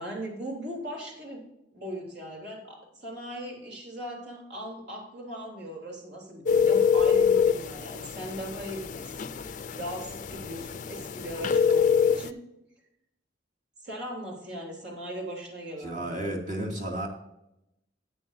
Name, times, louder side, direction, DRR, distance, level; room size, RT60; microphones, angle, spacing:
voice 1, 0.0-1.4 1.7-12.4 13.8-16.3, equal, 65° right, -1 dB, 3.5 m, -39 dB
sound 1, 6.5-12.3, left 7 dB, 45° left, 0.5 m, -25 dB
voice 2, 15.8-17.1, right 1 dB, 45° right, 0 dB, 2.4 m, -32 dB
13.5 x 8.9 x 2.7 m, 0.85 s
head